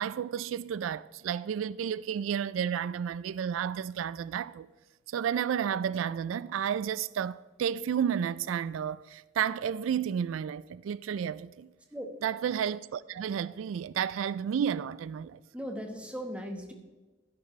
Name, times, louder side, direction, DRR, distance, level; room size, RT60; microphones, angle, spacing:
voice 1, 0.0-4.7 5.1-11.7 12.2-15.4, right 8 dB, 90° right, 0.3 m, -31 dB
voice 2, 15.5-16.7, equal, 5° right, 1.2 m, -38 dB
12.0 x 10.5 x 3.2 m
head